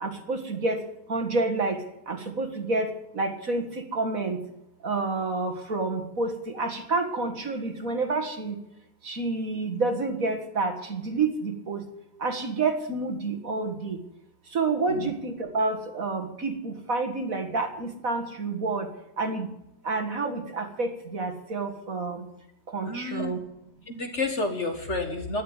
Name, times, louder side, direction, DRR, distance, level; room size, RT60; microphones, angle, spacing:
voice 1, 0.0-0.8 1.1-1.8 2.1-4.4 4.8-8.6 9.0-11.8 12.2-14.0 14.5-18.9 19.2-19.5 19.8-22.2 22.7-23.4, right 3 dB, 45° right, 5 dB, 2.1 m, -29 dB
voice 2, 22.9-23.3 23.9-25.4, left 3 dB, 40° left, 5 dB, 1.6 m, -30 dB
12.5 x 11.0 x 9.7 m, 0.83 s
omnidirectional pair, 2.1 m